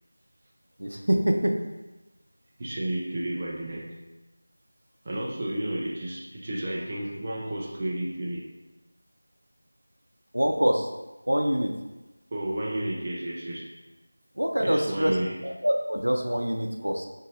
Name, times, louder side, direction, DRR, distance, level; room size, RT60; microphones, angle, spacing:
voice 1, 0.8-1.6 10.3-10.9 11.3-11.8 14.4-15.2 15.4-17.1, equal, 75° right, 3 dB, 0.6 m, -25 dB
voice 2, 2.6-4.0 5.0-8.5 12.3-13.7 14.6-15.4, right 1 dB, 25° right, -2 dB, 0.4 m, -32 dB
6.3 x 3.1 x 2.5 m, 1.1 s
figure-of-eight pair, 170°, 0 cm